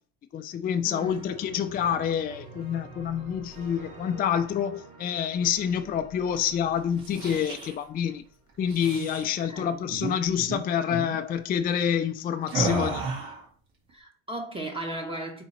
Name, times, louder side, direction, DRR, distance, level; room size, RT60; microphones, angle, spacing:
voice 1, 0.3-8.2 8.6-13.1, left 8 dB, 25° left, 0.4 m, -27 dB
voice 2, 0.8-1.3 9.4-9.8 13.9-15.4, right 1 dB, 15° right, 0.8 m, -36 dB
sound 1, 1.1-8.7, right 3 dB, 90° right, 1.6 m, -48 dB
sound 2, 6.9-7.7 8.6-9.2 9.9-10.1 10.4-10.6 10.9-11.2 12.5-13.4, right 4 dB, 60° right, 2.0 m, -32 dB
3.9 x 3.0 x 4.3 m
supercardioid pair, 100°, 38 cm